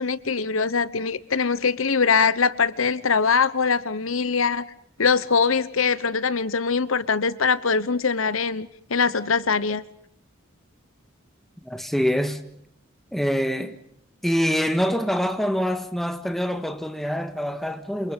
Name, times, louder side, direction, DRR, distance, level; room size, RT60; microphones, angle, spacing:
voice 1, 0.0-4.6 5.0-9.8, left 5 dB, 75° left, 1.1 m, -22 dB
voice 2, 11.6-12.4 13.1-13.8 14.2-18.1, equal, ahead, 1.8 m, -25 dB
28.0 x 28.0 x 5.4 m
head